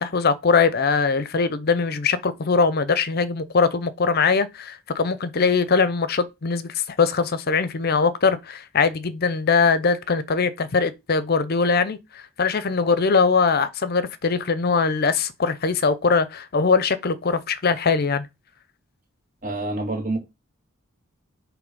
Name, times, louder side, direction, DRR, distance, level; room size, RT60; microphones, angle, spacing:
voice 1, 0.0-18.3, left 5 dB, 45° left, 0.6 m, -21 dB
voice 2, 19.4-20.2, right 2 dB, 40° right, 2.2 m, -27 dB
8.2 x 3.1 x 5.4 m
head